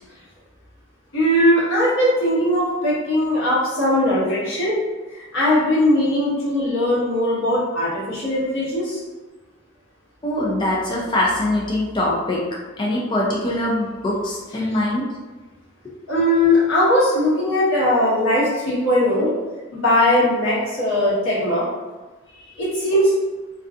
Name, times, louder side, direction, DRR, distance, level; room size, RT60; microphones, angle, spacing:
voice 1, 1.1-4.7 5.1-9.0 16.1-19.3 19.7-21.6 22.6-23.1, left 1 dB, 80° left, -9 dB, 1.2 m, -19 dB
voice 2, 10.2-12.4 12.8-15.0 22.4-22.6, left 1 dB, 25° left, -4 dB, 0.4 m, -23 dB
2.6 x 2.3 x 2.4 m, 1.2 s
head